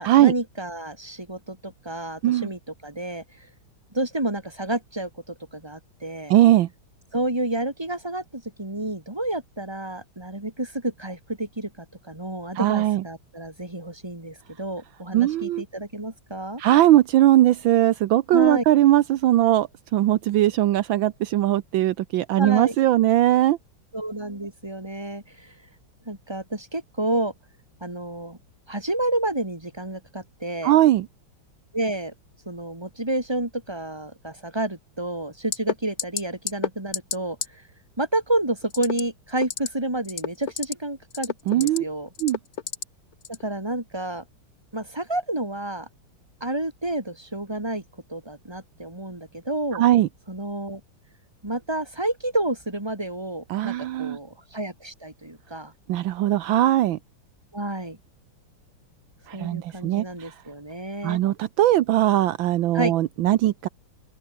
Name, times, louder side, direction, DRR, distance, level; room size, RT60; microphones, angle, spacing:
voice 1, 0.0-3.2 3.9-6.3 7.1-16.6 18.3-18.6 22.4-22.8 23.9-25.5 26.1-27.3 27.8-28.4 28.7-30.7 31.7-32.1 32.5-37.6 38.0-42.1 43.3-44.2 44.7-45.9 46.4-47.8 48.1-49.8 50.3-50.8 51.4-55.7 57.5-58.0 59.3-61.2 62.7-62.9, right 1 dB, 10° right, 4.2 m, -30 dB
voice 2, 6.3-6.7 12.5-13.0 15.1-15.6 16.6-23.6 30.6-31.1 41.5-41.8 42.2-42.4 49.7-50.1 53.5-54.2 55.9-57.0 59.3-60.3 61.0-63.7, right 13 dB, 75° right, 1.5 m, -20 dB
sound 1, 35.5-35.7 36.0-36.2 36.5-36.7 36.9-37.2 37.4-37.5 38.7-39.0 39.4-39.7 40.0-40.7 41.1-41.8 42.2-42.8 43.2-43.4, left 8 dB, 50° left, 1.5 m, -27 dB
open air
omnidirectional pair, 2.2 m